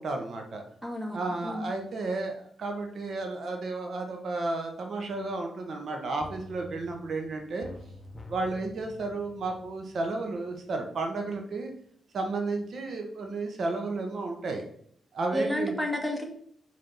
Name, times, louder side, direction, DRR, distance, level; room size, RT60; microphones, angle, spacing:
voice 1, 0.0-0.6 1.1-7.7 8.3-11.7 12.1-14.6 15.1-15.7, right 3 dB, 60° right, 3 dB, 1.3 m, -32 dB
voice 2, 0.8-1.7 15.3-16.2, equal, ahead, 1 dB, 1.8 m, -31 dB
sound 1, 6.2-10.9 11.2-11.3, left 2 dB, 20° left, 1.0 m, -48 dB
5.5 x 4.8 x 6.0 m, 0.65 s
cardioid pair, 85°, 0 cm